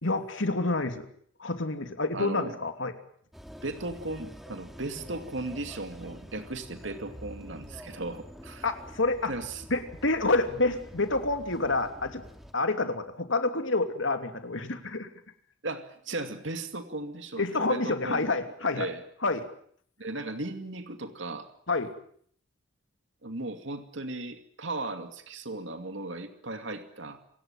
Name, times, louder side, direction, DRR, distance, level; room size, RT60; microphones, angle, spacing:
voice 1, 0.0-1.1 1.4-2.9 8.6-9.3 9.7-12.2 12.5-15.1 17.4-18.9 19.2-19.4 21.7-21.9, left 3 dB, 75° left, 7 dB, 3.0 m, -28 dB
voice 2, 2.1-2.6 3.6-8.7 9.3-9.6 15.6-18.3 18.7-19.0 20.0-21.5 23.2-27.2, right 2 dB, 70° right, 7 dB, 2.5 m, -36 dB
sound 1, 3.3-12.5, equal, ahead, 2.5 m, -47 dB
28.0 x 17.5 x 9.0 m, 0.63 s
head